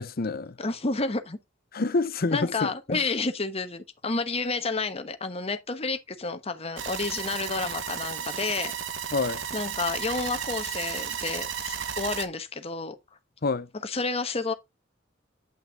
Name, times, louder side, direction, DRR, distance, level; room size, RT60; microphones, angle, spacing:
voice 1, 0.0-0.6 1.7-3.1 9.1-9.4 13.4-13.7, left 3 dB, 50° left, 0.7 m, -28 dB
voice 2, 0.6-1.4 2.3-8.7 9.5-13.0 13.8-14.5, left 3 dB, 35° left, 1.1 m, -30 dB
sound 1, 6.8-12.3, right 7 dB, 80° right, 1.1 m, -33 dB
9.0 x 5.7 x 3.6 m
head